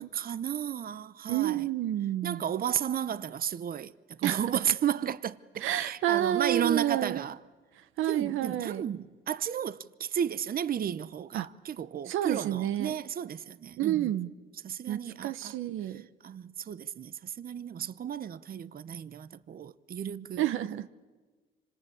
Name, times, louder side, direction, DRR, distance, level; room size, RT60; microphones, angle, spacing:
voice 1, 0.0-1.6 2.2-3.9 4.2-7.4 8.1-14.1 14.6-15.6 16.2-20.9, right 9 dB, 45° right, 0.8 m, -33 dB
voice 2, 1.3-2.4 4.2-4.4 5.6-7.2 8.0-8.8 11.3-11.5 12.1-12.9 13.8-14.3 14.9-16.1 20.4-20.9, right 12 dB, 85° right, 0.8 m, -29 dB
26.5 x 25.5 x 8.6 m
cardioid pair, 90°, 20 cm